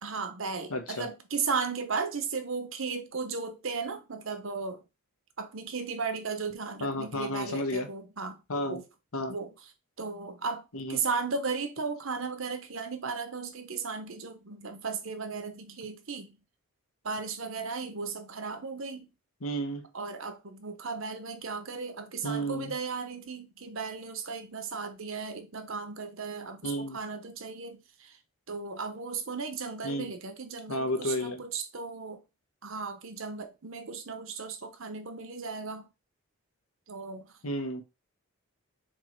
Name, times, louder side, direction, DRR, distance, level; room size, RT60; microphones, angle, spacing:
voice 1, 0.0-4.8 5.4-8.8 9.3-9.5 10.0-16.4 17.0-19.1 19.9-28.2 28.5-32.2 32.6-35.9 36.9-37.3, right 5 dB, 60° right, 0.9 m, -36 dB
voice 2, 0.7-1.1 6.8-7.9 8.5-8.8 9.1-9.3 10.7-11.0 19.4-19.9 22.2-22.7 26.6-27.0 29.8-30.1 30.7-31.4 37.4-37.8, equal, 70° left, 1.3 m, -32 dB
6.6 x 3.2 x 4.5 m
head